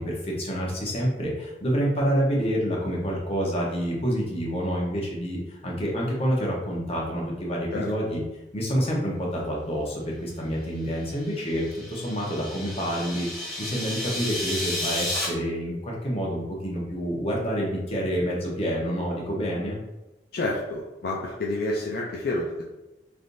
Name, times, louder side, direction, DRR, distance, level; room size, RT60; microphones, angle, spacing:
voice 1, 0.0-8.2 8.5-19.8, equal, 35° left, -3 dB, 0.8 m, -28 dB
sound 1, 11.1-15.3, left 1 dB, ahead, 0.7 m, -32 dB
voice 2, 20.3-22.6, left 2 dB, 55° left, -2 dB, 0.4 m, -29 dB
3.3 x 2.6 x 2.6 m, 1.0 s
head